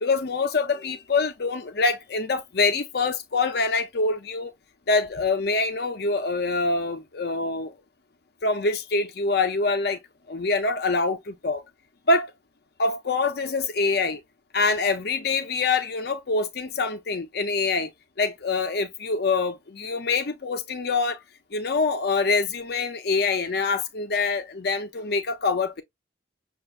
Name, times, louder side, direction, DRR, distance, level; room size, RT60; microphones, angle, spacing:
voice 1, 0.0-4.5 4.9-7.7 8.4-10.0 10.3-11.6 12.1-12.3 12.8-14.2 14.5-17.9 18.2-21.2 21.5-25.8, left 3 dB, 55° left, 0.6 m, -25 dB
6.6 x 2.4 x 2.5 m
head